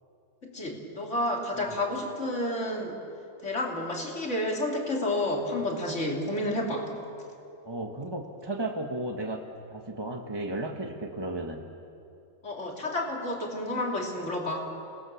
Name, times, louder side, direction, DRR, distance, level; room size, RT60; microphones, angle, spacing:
voice 1, 0.4-3.0 3.4-6.9 12.4-14.6, left 1 dB, 35° left, -1 dB, 3.3 m, -30 dB
voice 2, 7.6-11.6, right 2 dB, 15° right, 2 dB, 0.9 m, -34 dB
29.5 x 19.5 x 7.0 m, 2.7 s
omnidirectional pair, 2.1 m